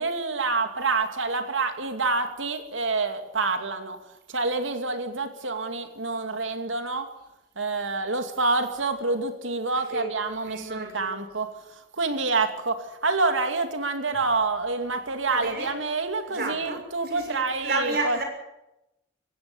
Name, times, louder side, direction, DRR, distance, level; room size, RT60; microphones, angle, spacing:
voice 1, 0.0-4.0 4.3-7.1 7.6-18.2, right 3 dB, 90° right, 7 dB, 2.5 m, -27 dB
voice 2, 10.4-11.3 15.3-15.7 16.2-18.2, right 3 dB, 55° right, 3 dB, 6.3 m, -32 dB
17.5 x 17.0 x 9.3 m, 0.89 s
head